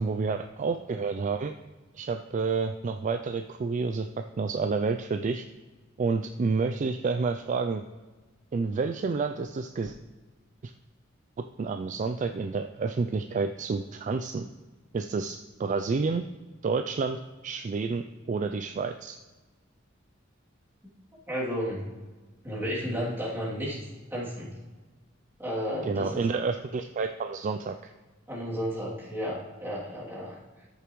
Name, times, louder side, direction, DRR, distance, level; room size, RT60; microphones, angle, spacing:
voice 1, 0.0-1.5 1.9-4.1 4.4-5.4 6.0-7.8 8.5-10.0 10.6-10.7 11.6-14.5 14.9-16.2 16.6-19.2 25.8-27.9, right 4 dB, 40° right, 7 dB, 0.3 m, -29 dB
voice 2, 21.3-21.9 22.4-23.8 24.1-24.5 25.4-26.2 28.3-30.4, equal, 10° right, -7 dB, 2.8 m, -32 dB
13.5 x 6.7 x 3.1 m, 1.3 s
head